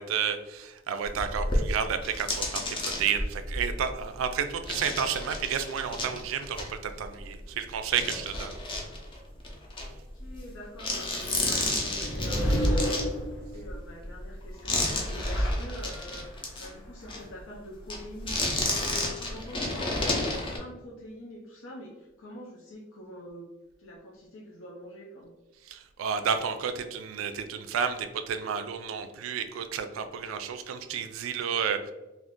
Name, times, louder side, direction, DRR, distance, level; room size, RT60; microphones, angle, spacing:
voice 1, 0.0-2.6 3.0-8.5 25.7-31.9, right 7 dB, 75° right, 9 dB, 0.3 m, -31 dB
sound 1, 1.0-7.5 7.9-10.5 10.8-16.7 17.0-17.2 17.9-20.6, left 2 dB, 25° left, 0.5 m, -32 dB
voice 2, 9.9-23.5 23.8-25.3, equal, 75° left, -3 dB, 0.5 m, -45 dB
sound 2, 11.8-13.7 14.7-16.3, equal, 90° left, 1.0 m, -29 dB
2.5 x 2.4 x 3.5 m, 1.0 s
head